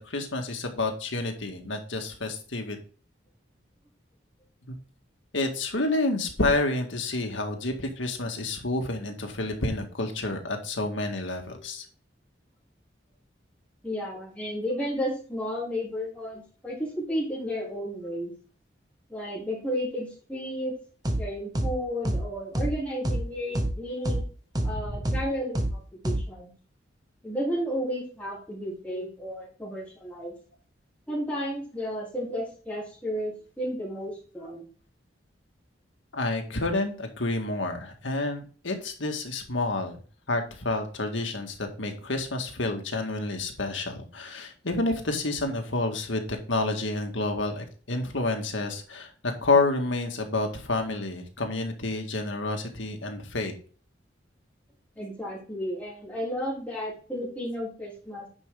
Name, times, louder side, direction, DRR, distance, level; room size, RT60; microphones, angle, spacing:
voice 1, 0.1-2.8 5.3-11.9 24.7-25.0 36.1-40.0 40.3-49.1 49.4-53.5, left 2 dB, 85° left, 4 dB, 1.9 m, -29 dB
voice 2, 13.8-18.3 19.1-20.7 21.2-24.2 24.6-26.5 27.2-30.3 31.1-34.7 55.0-58.3, equal, 5° left, -5 dB, 3.5 m, -33 dB
sound 1, 21.0-21.2 21.5-21.7 22.0-22.2 22.5-22.7 23.0-23.2 23.5-23.7 24.0-24.2 24.5-24.7 25.0-25.2 25.5-25.7 26.0-26.2, right 1 dB, 20° right, 1.0 m, -26 dB
9.9 x 5.6 x 3.8 m, 0.40 s
head